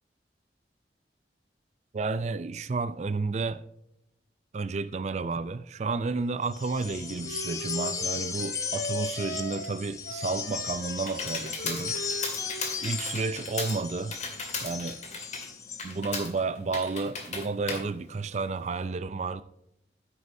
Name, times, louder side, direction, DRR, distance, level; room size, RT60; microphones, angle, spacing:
voice 1, 1.9-3.6 4.5-12.0 12.8-14.2 14.6-15.0 15.8-19.4, right 4 dB, 40° right, 0.4 m, -31 dB
sound 1, 6.4-15.9, left 6 dB, 20° left, 1.0 m, -36 dB
Wind instrument woodwind instrument, 6.8-13.2, equal, 70° left, 2.0 m, -40 dB
Computer keyboard, 10.2-18.8, left 4 dB, 40° left, 2.1 m, -37 dB
11.0 x 9.4 x 2.6 m
head